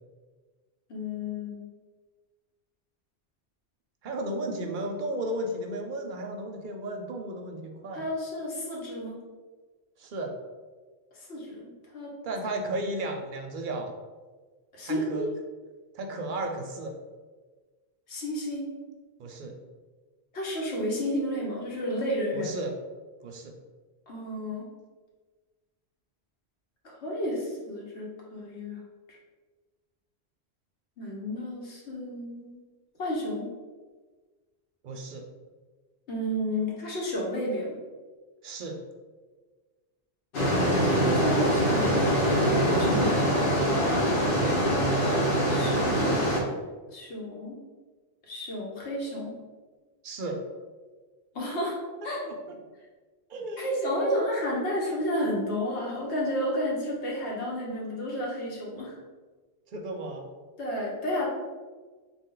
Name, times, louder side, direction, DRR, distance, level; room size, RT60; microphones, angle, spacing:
voice 1, 0.9-1.7 7.9-9.2 11.1-12.1 14.7-15.3 18.1-18.7 20.3-22.5 24.1-24.6 26.8-28.8 29.1-29.2 31.0-32.6 33.0-33.5 36.1-37.8 40.8-42.2 42.7-43.2 45.5-46.3 46.9-47.6 48.3-49.4 51.3-51.8 52.0-52.2 53.6-59.0 60.6-61.3, equal, 90° left, -3 dB, 1.2 m, -31 dB
voice 2, 4.0-8.0 10.0-10.3 12.2-13.9 14.8-15.3 15.9-16.9 19.2-19.5 22.3-22.8 23.2-23.5 34.8-35.2 38.4-38.8 44.2-44.6 50.0-50.4 52.3-52.4 53.3-53.7 54.0-54.3 59.7-60.3, right 1 dB, 60° right, 3 dB, 0.6 m, -34 dB
sound 1, 40.3-46.4, equal, 60° left, 0.9 m, -24 dB
3.6 x 2.3 x 3.7 m, 1.4 s
omnidirectional pair, 1.1 m